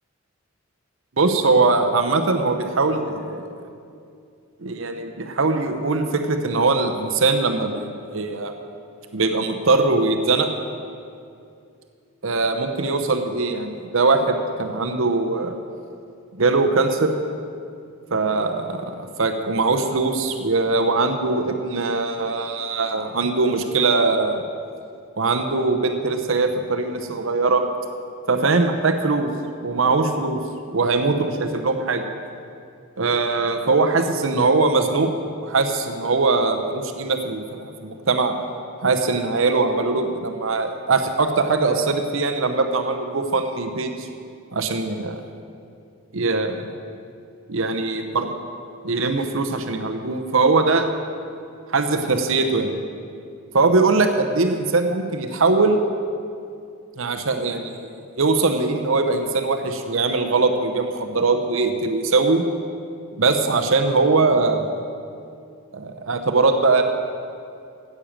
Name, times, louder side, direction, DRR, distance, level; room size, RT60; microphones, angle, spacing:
voice 1, 1.2-3.4 4.6-8.5 9.1-10.5 12.2-15.5 16.3-17.1 18.1-18.8 19.2-24.4 25.2-27.6 28.3-29.3 29.6-30.4 30.7-32.0 33.0-35.1 35.4-38.3 38.8-44.1 44.5-45.2 46.1-46.7 47.5-48.3 48.8-50.9 51.7-52.8 53.5-55.9 57.0-57.9 58.2-62.4 63.2-64.7 65.7-66.8, right 3 dB, 70° right, 6 dB, 0.8 m, -21 dB
10.0 x 8.5 x 7.4 m, 2.4 s
head